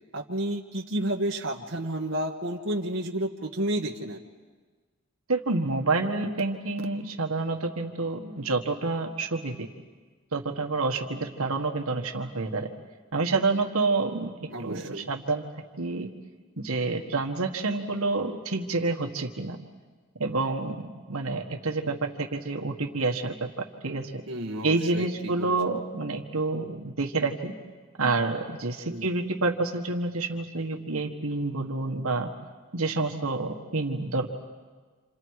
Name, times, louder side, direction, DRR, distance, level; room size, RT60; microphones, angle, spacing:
voice 1, 0.1-4.2 14.5-15.1 24.3-25.6 28.9-29.1, right 1 dB, 55° right, -2 dB, 1.5 m, -31 dB
voice 2, 5.3-9.7 10.3-12.7 13.1-14.3 14.6-15.4 15.8-16.1 16.6-19.6 20.2-24.2 24.6-27.5 28.0-32.3 32.7-34.3, right 3 dB, 75° right, 3 dB, 1.6 m, -28 dB
28.5 x 28.0 x 4.8 m, 1.4 s
head